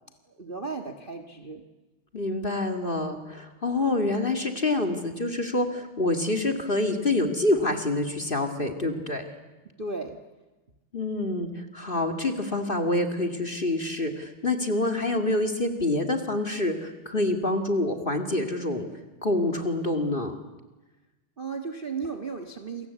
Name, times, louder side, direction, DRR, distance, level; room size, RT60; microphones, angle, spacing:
voice 1, 0.4-1.6 9.8-10.2 21.4-22.9, right 4 dB, 30° right, 7 dB, 1.4 m, -35 dB
voice 2, 2.1-9.2 10.9-18.9 19.2-20.4, left 2 dB, 25° left, 5 dB, 2.2 m, -27 dB
29.0 x 23.5 x 8.4 m, 1.1 s
omnidirectional pair, 2.4 m